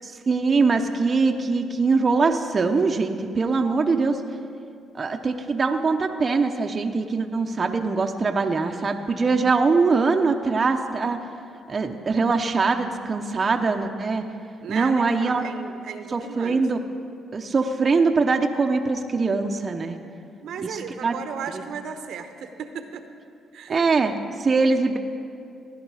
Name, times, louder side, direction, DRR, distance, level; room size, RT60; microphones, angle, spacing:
voice 1, 0.3-4.2 4.9-11.2 11.7-14.2 14.7-15.4 16.1-16.8 17.3-20.0 20.7-21.1 23.7-24.1 24.4-25.0, right 4 dB, 35° right, 4 dB, 0.7 m, -22 dB
voice 2, 14.6-16.6 20.4-23.0 23.5-23.8, right 6 dB, 75° right, 7 dB, 0.9 m, -35 dB
16.5 x 10.5 x 4.9 m, 2.4 s
cardioid pair, 90°, 0 cm